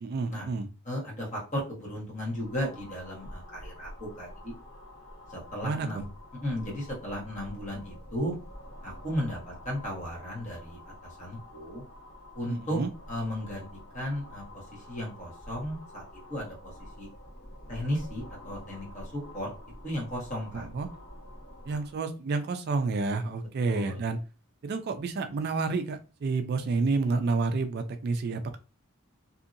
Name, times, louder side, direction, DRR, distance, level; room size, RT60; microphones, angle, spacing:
voice 1, 0.0-0.7 5.6-6.0 12.5-12.9 20.5-20.9 21.7-24.2 24.6-28.6, right 4 dB, 45° right, 8 dB, 0.3 m, -29 dB
voice 2, 0.8-4.5 5.3-6.0 6.4-8.3 8.8-11.8 12.3-12.8 13.1-13.7 13.9-16.0 16.3-16.7 17.0-17.1 17.7-19.5 19.8-20.7 23.7-24.0, equal, 35° left, -2 dB, 1.2 m, -35 dB
sound 1, 2.1-22.0, left 1 dB, 70° left, 1.2 m, -47 dB
2.7 x 2.6 x 2.5 m, 0.32 s
head